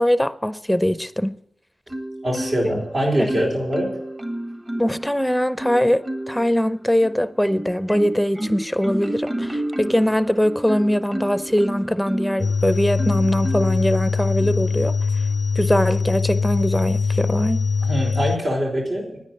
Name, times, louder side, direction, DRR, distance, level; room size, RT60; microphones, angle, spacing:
voice 1, 0.0-1.4 2.6-2.8 3.2-3.5 4.8-15.3 15.6-17.6, equal, 5° left, 0.7 m, -22 dB
Marimba xylophone, 1.9-2.9 3.3-5.1 5.6-6.5 7.0-12.5 13.0-13.9 14.4-14.7, right 1 dB, 25° right, 1.8 m, -30 dB
voice 2, 2.2-3.9 17.9-19.2, equal, 65° right, 4.4 m, -23 dB
sound 1, 12.4-18.4, left 5 dB, 45° left, 0.5 m, -22 dB
9.7 x 9.6 x 9.1 m
cardioid pair, 45°, 0 cm